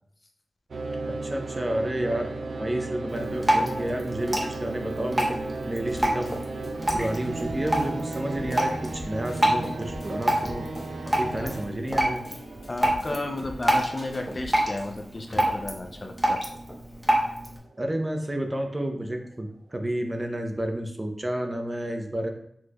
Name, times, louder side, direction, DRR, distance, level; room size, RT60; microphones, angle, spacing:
sound 1, 0.7-18.9, right 3 dB, 85° right, 0.3 m, -36 dB
voice 1, 1.1-2.3 2.6-5.4 5.7-6.4 6.9-10.7 11.2-12.2 17.8-22.3, right 1 dB, 25° right, 4 dB, 0.6 m, -30 dB
Drip, 3.1-17.6, right 1 dB, 5° right, 1.0 m, -28 dB
sound 2, 5.9-14.9, left 1 dB, 85° left, 1.1 m, -44 dB
voice 2, 12.7-16.4, left 2 dB, 35° left, 4 dB, 0.5 m, -33 dB
6.1 x 3.1 x 2.2 m, 0.74 s
wide cardioid pair, 80°, 0 cm